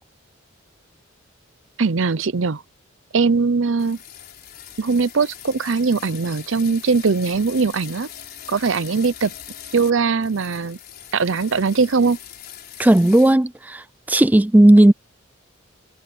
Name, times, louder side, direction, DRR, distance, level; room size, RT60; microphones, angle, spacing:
voice 1, 1.8-2.6 3.1-4.0 4.8-8.1 8.5-9.3 9.7-10.8 11.1-12.2, right 4 dB, 65° right, 0.7 m, -20 dB
sound 1, 3.8-9.9 10.2-13.3, left 10 dB, 50° left, 4.4 m, -41 dB
voice 2, 12.8-14.9, right 1 dB, 10° right, 0.3 m, -14 dB
head